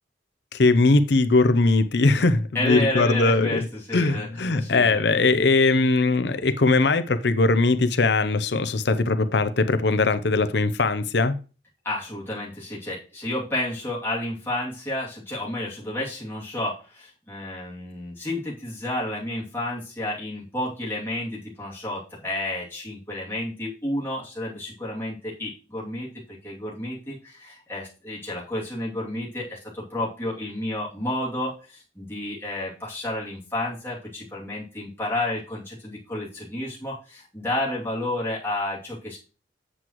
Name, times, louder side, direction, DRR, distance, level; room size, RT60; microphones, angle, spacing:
voice 1, 0.5-3.6 3.9-11.3, left 3 dB, 65° left, 0.6 m, -20 dB
voice 2, 2.5-5.0 11.8-39.2, left 1 dB, 10° left, 2.6 m, -31 dB
8.2 x 7.6 x 3.1 m
head